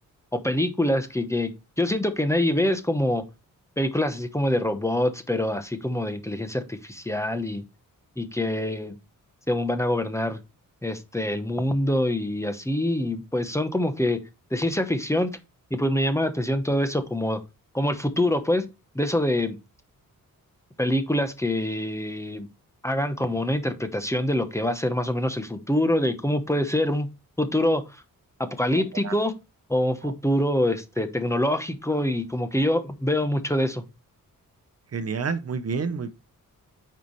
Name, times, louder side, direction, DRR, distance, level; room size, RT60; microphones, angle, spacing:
voice 1, 0.3-1.5 1.8-3.2 3.8-7.6 8.2-8.9 9.5-10.4 10.8-14.2 14.5-15.3 15.7-17.4 17.7-18.6 18.9-19.6 20.8-22.5 22.8-27.1 27.4-28.0 28.4-29.3 29.7-33.8, left 1 dB, 10° left, 0.9 m, -25 dB
voice 2, 34.9-36.1, right 5 dB, 45° right, 0.9 m, -28 dB
9.3 x 5.6 x 3.1 m
wide cardioid pair, 175°, 34 cm